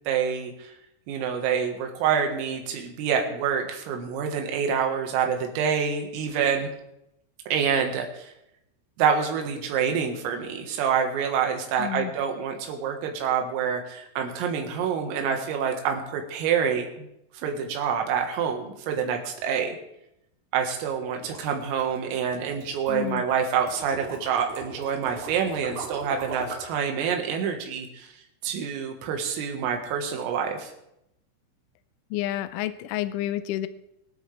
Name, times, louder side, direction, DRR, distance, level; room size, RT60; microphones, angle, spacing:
voice 1, 0.1-0.7 1.1-6.7 7.5-8.3 9.0-17.1 17.4-19.8 20.5-28.1 28.4-30.7, right 7 dB, 85° right, 3 dB, 4.3 m, -27 dB
voice 2, 11.8-12.1 22.9-23.2 32.1-33.7, left 13 dB, 80° left, 14 dB, 2.9 m, -29 dB
sound 1, 20.8-26.8, right 3 dB, 40° right, 3.8 m, -40 dB
25.5 x 8.7 x 3.4 m, 0.82 s
omnidirectional pair, 5.8 m